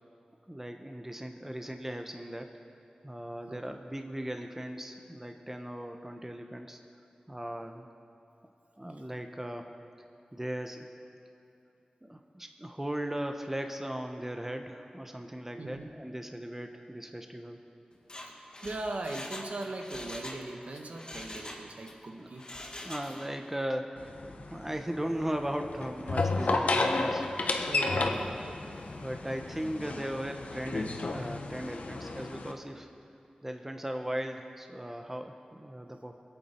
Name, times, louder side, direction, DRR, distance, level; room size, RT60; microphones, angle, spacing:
voice 1, 0.5-2.5 3.0-6.8 7.3-7.9 8.8-9.7 10.3-10.9 12.0-17.6 22.2-22.3 22.8-27.5 27.9-28.2 29.0-32.9 33.4-36.2, right 1 dB, 15° right, 5 dB, 0.9 m, -38 dB
voice 2, 15.6-15.9 18.3-18.4 18.6-22.5 27.7-28.8, right 2 dB, 70° right, 3 dB, 1.3 m, -39 dB
Mechanisms, 18.0-20.4 20.7-22.0 22.3-23.4 23.7-23.8, left 1 dB, 35° left, 1.7 m, -44 dB
sound 1, 24.0-32.5, left 3 dB, 85° left, 1.0 m, -32 dB
25.5 x 8.7 x 4.4 m, 2.7 s
wide cardioid pair, 80°, 2 cm